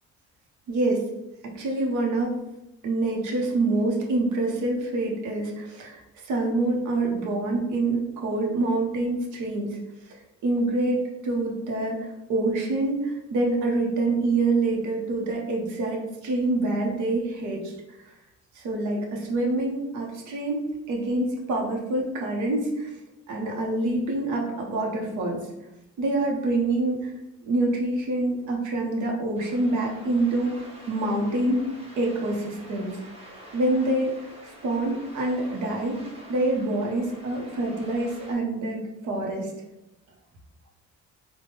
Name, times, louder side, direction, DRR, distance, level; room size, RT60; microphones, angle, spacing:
voice 1, 0.7-1.1 1.4-2.3 2.8-9.8 10.1-10.2 10.4-17.7 18.5-20.6 20.9-22.9 23.3-25.4 26.0-27.1 27.4-31.7 32.0-33.0 33.5-34.1 34.4-36.0 36.3-39.5, right 2 dB, 75° right, 0 dB, 0.7 m, -26 dB
sound 1, 29.4-38.3, equal, 20° right, 0.9 m, -47 dB
3.1 x 2.1 x 3.3 m, 0.96 s
cardioid pair, 90°, 30 cm